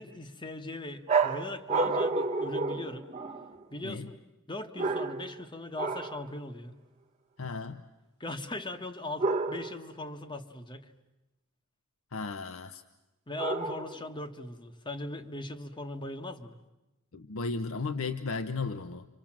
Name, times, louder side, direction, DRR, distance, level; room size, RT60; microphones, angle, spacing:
voice 1, 0.0-3.1 3.7-4.2 4.5-6.7 8.2-10.9 13.3-16.6, left 2 dB, 20° left, 7 dB, 1.2 m, -39 dB
sound 1, 1.1-3.6 4.8-5.4 5.8-6.2 9.2-9.9 13.4-14.1, right 3 dB, 30° right, 1.1 m, -30 dB
voice 2, 7.4-7.8 12.1-12.8 17.1-19.1, left 4 dB, 70° left, 8 dB, 0.8 m, -35 dB
29.5 x 25.0 x 7.3 m, 1.0 s
head